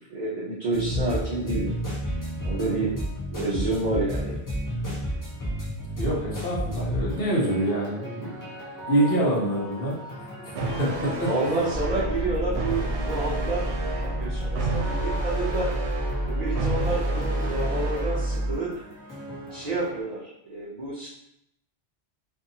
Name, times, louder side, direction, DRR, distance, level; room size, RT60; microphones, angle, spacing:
voice 1, 0.1-1.7 2.4-2.9 3.3-4.4 8.3-8.4 9.0-9.1 11.3-15.7 16.3-18.7 19.5-21.1, right 2 dB, 50° right, -6 dB, 0.5 m, -29 dB
sound 1, 0.7-20.0, equal, 25° left, 0.5 m, -34 dB
voice 2, 6.0-8.3 8.9-9.9 10.8-10.9 11.2-11.3, right 1 dB, 60° left, -4 dB, 1.0 m, -25 dB
sound 2, 10.5-18.5, right 3 dB, 85° right, 0.9 m, -33 dB
sound 3, 11.7-18.6, right 1 dB, 10° left, 1.1 m, -29 dB
2.6 x 2.6 x 2.6 m, 0.77 s
omnidirectional pair, 1.1 m